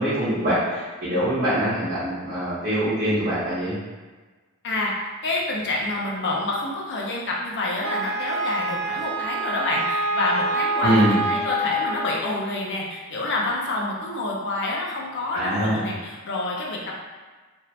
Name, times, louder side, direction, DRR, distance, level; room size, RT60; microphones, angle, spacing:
voice 1, 0.0-3.8 10.8-11.2 15.3-15.8, equal, 40° right, -13 dB, 1.1 m, -23 dB
voice 2, 5.2-16.9, left 2 dB, 55° left, -3 dB, 0.6 m, -27 dB
Wind instrument woodwind instrument, 7.8-12.4, right 2 dB, 85° right, 0.5 m, -26 dB
2.7 x 2.5 x 3.2 m, 1.3 s
head